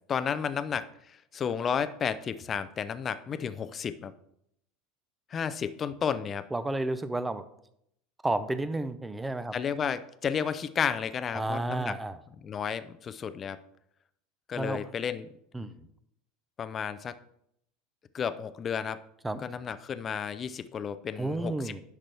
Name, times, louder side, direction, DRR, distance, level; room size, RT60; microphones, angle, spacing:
voice 1, 0.1-4.1 5.3-6.4 9.5-11.9 12.4-13.6 14.5-15.3 16.6-17.2 18.1-19.0 19.4-21.7, left 7 dB, 35° left, 14 dB, 0.6 m, -32 dB
voice 2, 6.5-7.4 8.2-9.6 11.3-12.2 14.6-14.8 15.5-15.9 19.2-19.5 21.2-21.8, right 2 dB, 10° right, 12 dB, 0.7 m, -31 dB
10.0 x 6.0 x 3.4 m, 0.74 s
supercardioid pair, 100°, 0 cm